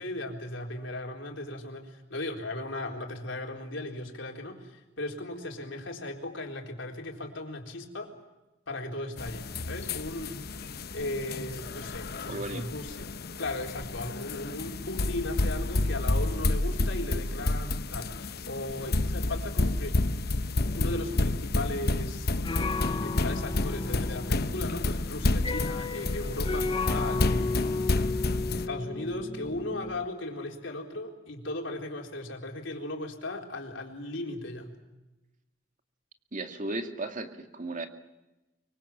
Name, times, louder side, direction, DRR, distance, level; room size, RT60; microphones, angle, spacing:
voice 1, 0.0-8.1 8.7-10.4 10.9-13.1 13.4-20.0 20.7-27.6 28.5-34.7, left 2 dB, 70° left, 1 dB, 4.2 m, -37 dB
sound 1, 9.2-28.7, left 2 dB, 55° left, 0.9 m, -30 dB
voice 2, 12.3-12.6 36.3-37.9, right 2 dB, 40° right, 5 dB, 2.3 m, -35 dB
sound 2, 20.6-30.1, left 3 dB, 25° left, 0.9 m, -35 dB
24.5 x 24.0 x 7.5 m, 1.0 s
head